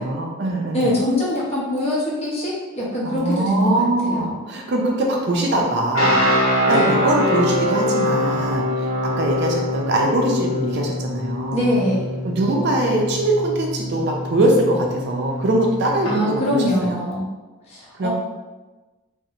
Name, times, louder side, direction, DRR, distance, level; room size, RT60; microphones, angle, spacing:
voice 1, 0.0-0.9 3.0-6.2 6.7-11.8 12.2-17.0 18.0-18.1, right 1 dB, 55° right, 0 dB, 0.4 m, -22 dB
voice 2, 0.7-4.3 6.7-6.9 11.5-12.1 16.0-17.3 17.7-18.1, left 1 dB, 30° left, -6 dB, 0.6 m, -23 dB
sound 1, 5.9-16.1, left 1 dB, 70° left, 0.6 m, -24 dB
2.6 x 2.0 x 2.7 m, 1.2 s
head